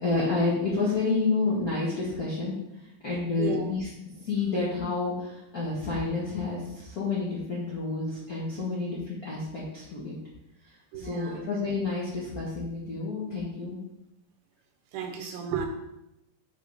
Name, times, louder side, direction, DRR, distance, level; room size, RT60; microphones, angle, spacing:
voice 1, 0.0-10.2 10.6-13.8, left 3 dB, 90° left, -6 dB, 0.8 m, -30 dB
voice 2, 3.4-3.7 10.9-11.5 14.9-15.7, right 7 dB, 80° right, 5 dB, 2.0 m, -33 dB
6.6 x 3.6 x 4.9 m, 0.85 s
omnidirectional pair, 4.0 m